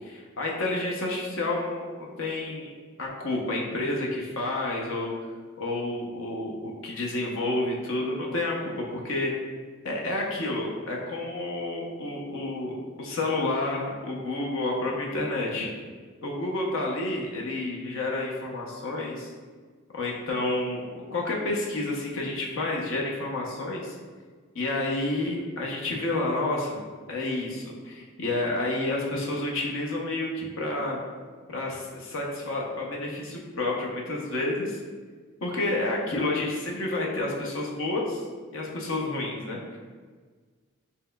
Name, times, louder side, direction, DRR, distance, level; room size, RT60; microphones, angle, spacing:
voice 1, 0.0-2.7 3.0-5.1 5.6-9.3 9.8-15.7 16.2-19.3 19.9-23.9 24.5-26.8 27.1-31.0 31.5-34.8 35.4-38.3 38.5-39.8, left 2 dB, 60° left, -2 dB, 0.7 m, -30 dB
5.4 x 2.9 x 2.3 m, 1.5 s
head